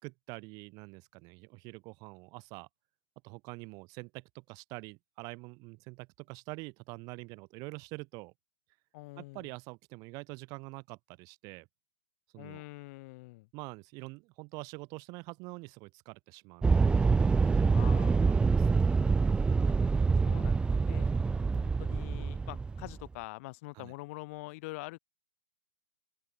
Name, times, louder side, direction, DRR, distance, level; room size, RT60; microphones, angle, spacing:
voice 1, 0.0-2.7 3.2-8.3 9.2-11.7 12.3-12.6 13.5-17.0 17.4-18.8 23.7-23.9, right 27 dB, 35° right, 4.8 m, -46 dB
voice 2, 8.9-9.5 12.4-13.5 17.7-18.3 19.6-19.7 20.2-21.1 21.5-25.0, left 23 dB, 40° left, 5.5 m, -45 dB
sound 1, 16.6-23.1, right 4 dB, 10° right, 1.6 m, -26 dB
open air
hypercardioid pair, 130°, 11 cm